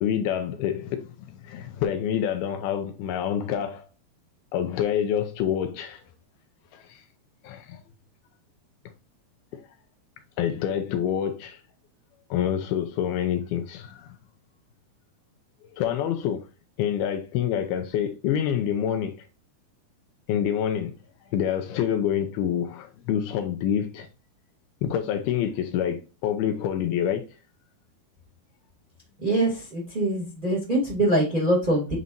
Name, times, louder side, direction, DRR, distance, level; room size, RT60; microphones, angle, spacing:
voice 1, 0.0-3.9 4.5-6.0 6.7-7.0 7.4-7.8 9.5-9.6 10.4-11.6 12.3-14.1 15.7-16.5 16.8-19.3 20.3-20.9 21.3-24.1 24.8-27.3, left 9 dB, 80° left, 2.5 m, -27 dB
voice 2, 29.2-32.0, right 1 dB, 15° right, 1.9 m, -24 dB
8.9 x 4.1 x 2.6 m
omnidirectional pair, 4.5 m